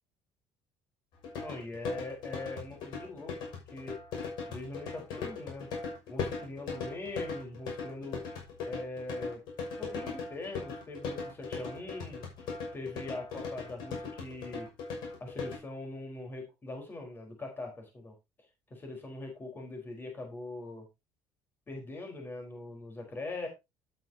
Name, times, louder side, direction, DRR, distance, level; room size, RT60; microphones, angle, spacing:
sound 1, 1.2-15.6, left 4 dB, 70° left, 6.3 m, -39 dB
voice 1, 1.4-3.4 3.7-4.0 4.5-5.7 6.1-8.2 8.6-9.4 9.8-12.5 12.7-14.7 15.2-18.1 18.7-20.9 21.7-23.5, left 2 dB, 25° left, 3 dB, 4.4 m, -42 dB
11.5 x 9.2 x 2.9 m, 0.23 s
supercardioid pair, 105°, 8 cm